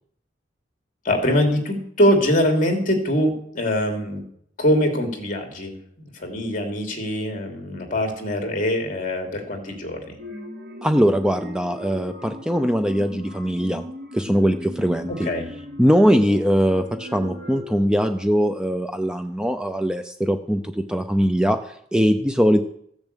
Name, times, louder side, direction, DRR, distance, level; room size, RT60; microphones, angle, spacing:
voice 1, 1.0-4.2 4.6-10.2 15.1-15.5, equal, 45° left, 3 dB, 3.0 m, -23 dB
sound 1, 10.2-17.8, left 1 dB, 55° right, 7.2 m, -38 dB
voice 2, 10.8-13.9 14.1-15.3 15.8-22.6, equal, 5° right, 7 dB, 0.6 m, -21 dB
15.0 x 7.0 x 8.3 m, 0.68 s
head